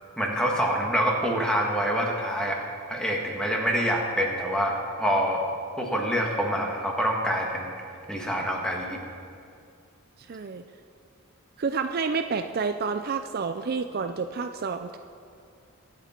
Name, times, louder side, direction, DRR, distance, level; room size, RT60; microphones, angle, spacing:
voice 1, 0.2-2.6 2.9-5.4 5.8-7.7 8.1-9.0, equal, 5° left, -1 dB, 1.7 m, -26 dB
voice 2, 10.3-10.6 11.6-15.0, right 5 dB, 45° right, 8 dB, 0.4 m, -29 dB
23.0 x 8.3 x 4.4 m, 2.5 s
head